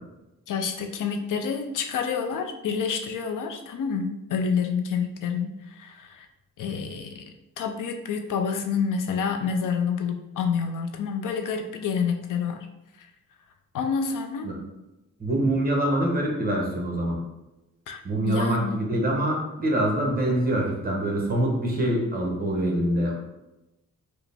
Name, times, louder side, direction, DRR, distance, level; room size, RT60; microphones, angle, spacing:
voice 1, 0.5-6.3 6.6-7.2 7.6-12.7 13.0-13.1 13.7-14.5 17.9-18.0 18.3-18.7, left 6 dB, 70° left, 4 dB, 0.5 m, -28 dB
voice 2, 15.2-17.2 18.0-23.1, right 1 dB, 25° right, -1 dB, 0.9 m, -25 dB
4.7 x 2.1 x 3.4 m, 0.96 s
wide cardioid pair, 145°, 33 cm